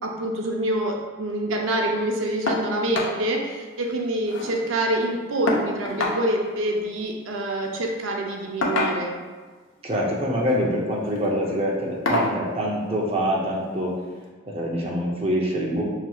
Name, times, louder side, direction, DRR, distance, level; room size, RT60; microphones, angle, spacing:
voice 1, 0.0-9.2, right 1 dB, 80° right, 1 dB, 0.5 m, -26 dB
sound 1, 2.5-2.7 2.9-3.2 3.5-3.6 3.9-4.6 5.5-6.2 7.4-7.6 8.6-9.3 10.3-10.6 11.1-11.3 12.1-12.4 13.6-13.7 14.2-14.3, left 2 dB, 80° left, 0.6 m, -26 dB
voice 2, 9.8-14.0 14.5-15.8, equal, 30° right, -3 dB, 0.6 m, -25 dB
5.8 x 2.9 x 2.3 m, 1.4 s
head